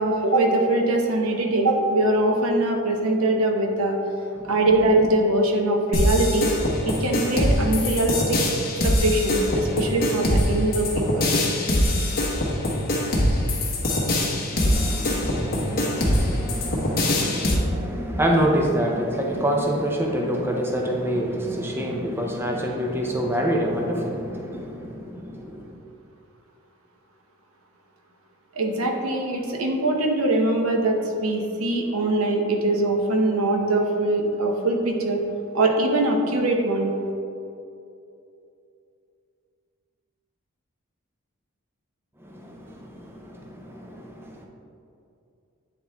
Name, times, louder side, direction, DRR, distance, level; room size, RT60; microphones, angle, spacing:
voice 1, 0.0-4.0 4.4-6.5 6.8-8.4 8.8-11.3 28.5-35.2 35.5-36.9, right 2 dB, 70° right, 2 dB, 0.9 m, -22 dB
sound 1, 5.9-17.5, left 1 dB, 45° left, 1.2 m, -23 dB
voice 2, 14.5-25.8 42.2-44.5, equal, 10° right, 0 dB, 0.5 m, -27 dB
9.2 x 4.2 x 3.4 m, 2.7 s
head